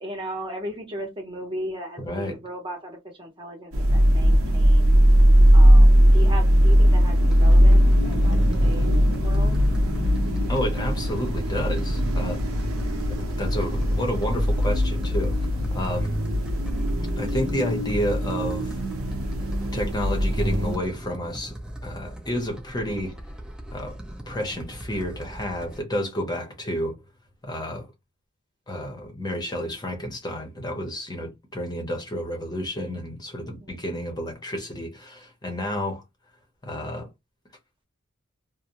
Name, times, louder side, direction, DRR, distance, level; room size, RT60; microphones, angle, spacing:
voice 1, 0.0-4.9 5.5-8.9 9.2-9.6 33.4-33.8, equal, 25° right, 0.8 m, -36 dB
sound 1, 3.7-20.8, equal, 75° right, 0.7 m, -19 dB
sound 2, 7.3-25.8, right 1 dB, 5° right, 0.4 m, -40 dB
voice 2, 10.5-12.4 13.2-15.3 15.7-16.2 17.2-18.8 19.7-21.5 21.8-23.1 23.7-24.0 24.3-26.9 27.4-27.9 28.7-36.0 36.6-37.1, equal, 20° left, 0.7 m, -30 dB
2.6 x 2.0 x 2.9 m
head